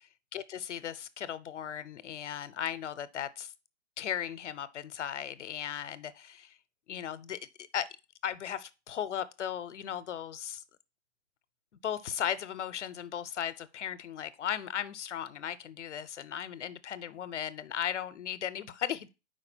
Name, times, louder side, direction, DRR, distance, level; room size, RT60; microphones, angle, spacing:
voice 1, 0.0-3.5 4.0-6.6 6.9-7.9 8.2-10.6 11.8-19.1, left 9 dB, 85° left, 0.8 m, -37 dB
4.8 x 4.8 x 4.3 m
hypercardioid pair, 150°, 35 cm